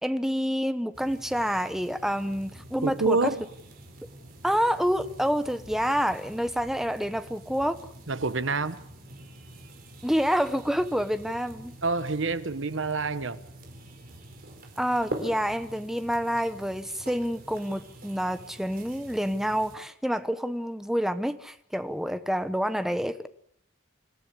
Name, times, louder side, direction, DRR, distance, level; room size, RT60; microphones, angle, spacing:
voice 1, 0.0-3.3 4.4-7.8 10.0-11.7 14.8-23.3, equal, ahead, 1.0 m, -28 dB
sound 1, 0.9-19.8, right 1 dB, 50° right, 4.5 m, -45 dB
voice 2, 2.8-3.4 8.1-8.8 11.8-13.4, right 3 dB, 75° right, 1.2 m, -27 dB
26.5 x 14.0 x 8.4 m
head